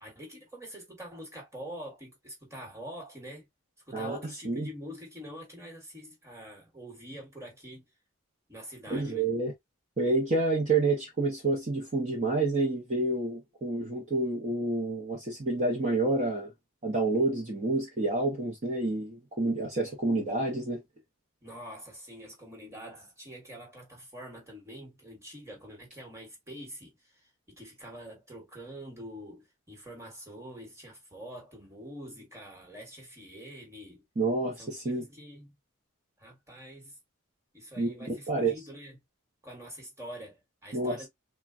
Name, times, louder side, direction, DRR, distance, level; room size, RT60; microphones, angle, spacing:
voice 1, 0.0-3.5 3.9-7.8 8.5-9.3 21.4-34.0 34.6-35.5 36.2-37.0 37.5-39.0 39.4-41.1, equal, 15° right, 1.2 m, -45 dB
voice 2, 8.9-9.5 10.0-16.5 16.8-20.8 34.2-35.0 37.8-38.5 40.7-41.0, right 2 dB, 35° right, 0.7 m, -28 dB
3.4 x 2.2 x 2.4 m
head